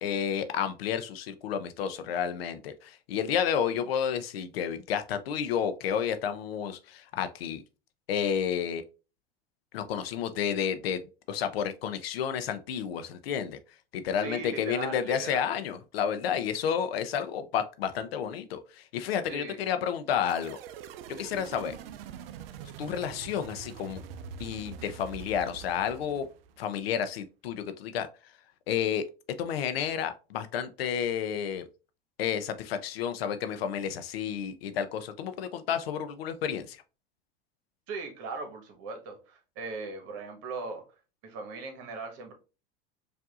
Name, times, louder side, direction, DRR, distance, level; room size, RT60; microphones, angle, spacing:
voice 1, 0.0-7.6 8.1-8.8 9.7-11.0 11.3-13.6 13.9-20.6 21.1-21.7 22.8-24.0 24.4-26.3 26.6-28.1 28.7-29.0 29.4-31.6 32.2-36.8, left 8 dB, 85° left, 0.6 m, -31 dB
voice 2, 14.2-15.5 19.3-19.7 37.9-40.8 41.2-42.3, right 4 dB, 55° right, 1.3 m, -39 dB
sound 1, 20.3-26.7, right 7 dB, 80° right, 0.4 m, -44 dB
4.7 x 2.6 x 2.4 m
hypercardioid pair, 100°, 29 cm